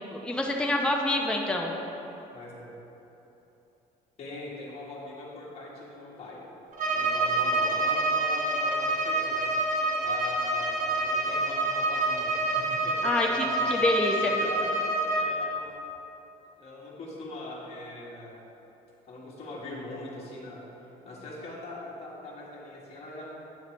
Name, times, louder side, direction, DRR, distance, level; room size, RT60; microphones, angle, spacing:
voice 1, 0.0-1.8 13.0-14.3, left 1 dB, 5° left, 0 dB, 0.7 m, -27 dB
voice 2, 2.3-2.7 4.2-6.4 6.9-9.5 10.0-13.8 14.2-15.8 16.6-18.4 19.1-20.6 21.0-23.3, left 2 dB, 40° left, -6 dB, 1.5 m, -42 dB
Bowed string instrument, 6.7-15.3, right 2 dB, 45° right, 1.1 m, -27 dB
8.9 x 6.5 x 3.2 m, 3.0 s
cardioid pair, 110°, 17 cm